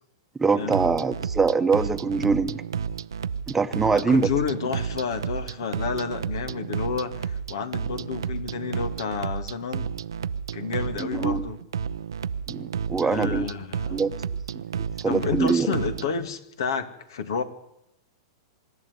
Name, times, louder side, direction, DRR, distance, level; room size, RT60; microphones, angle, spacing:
voice 1, 0.4-2.6 3.5-4.3 11.0-11.4 12.5-13.5 13.9-14.1 15.0-15.7, right 4 dB, 10° right, 8 dB, 1.1 m, -23 dB
sound 1, 0.6-16.1, right 7 dB, 85° right, 0.7 m, -32 dB
voice 2, 3.9-9.9 10.5-11.6 13.0-14.1 15.1-17.4, left 6 dB, 75° left, 10 dB, 2.3 m, -30 dB
25.5 x 11.5 x 9.7 m, 0.82 s
hypercardioid pair, 120°, 2 cm